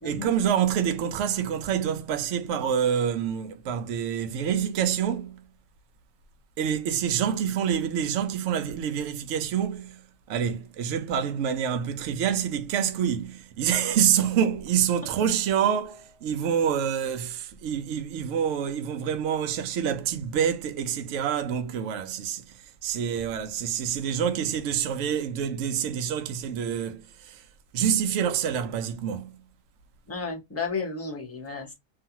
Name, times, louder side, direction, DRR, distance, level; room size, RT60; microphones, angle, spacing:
voice 1, 0.0-5.4 6.6-10.0 10.3-22.4 22.8-27.4 27.7-29.3, right 8 dB, 70° right, 0.7 m, -27 dB
voice 2, 30.1-31.7, left 4 dB, 15° left, 0.6 m, -33 dB
2.6 x 2.4 x 2.7 m
omnidirectional pair, 1.6 m